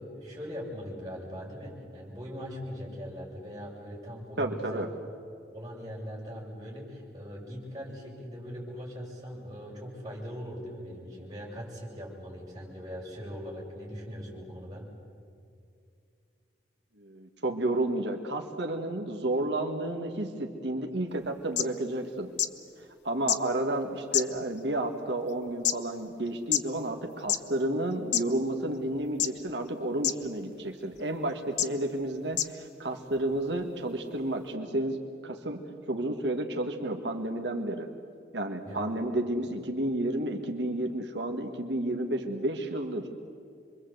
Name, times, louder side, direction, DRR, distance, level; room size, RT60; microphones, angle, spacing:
voice 1, 0.0-4.8 5.5-14.8 38.6-38.8, equal, 20° right, -4 dB, 7.4 m, -40 dB
voice 2, 4.4-4.9 17.0-22.3 23.0-37.9 38.3-43.1, right 1 dB, 90° right, 3 dB, 1.8 m, -31 dB
sound 1, 21.2-21.3 21.6-21.7 22.4-22.5 23.3-23.4 24.1-24.6 25.3-25.7 26.5-26.6 27.2-27.4 28.1-28.2 29.2-29.5 30.0-30.1 30.9-31.0 31.6-31.7 32.3-32.5 33.3-33.4, left 10 dB, 90° left, 1.0 m, -26 dB
27.0 x 23.5 x 8.0 m, 2.4 s
head